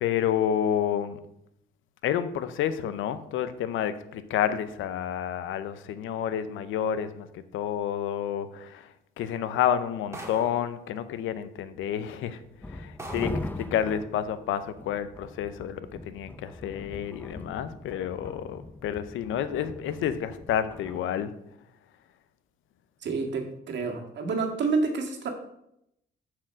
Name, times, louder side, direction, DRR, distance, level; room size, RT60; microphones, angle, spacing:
voice 1, 0.0-1.2 2.0-8.9 9.2-12.4 12.7-15.8 16.1-21.3, left 9 dB, 85° left, 13 dB, 0.7 m, -29 dB
sound 1, 10.1-10.7 11.7-11.8 12.4-12.5 13.0-13.5, right 1 dB, 15° right, 1.7 m, -41 dB
sound 2, 12.6-21.0, left 2 dB, 10° left, 0.6 m, -41 dB
voice 2, 23.0-25.3, right 4 dB, 65° right, 3 dB, 1.8 m, -28 dB
7.4 x 4.7 x 6.2 m, 0.79 s
cardioid pair, 90°, 20 cm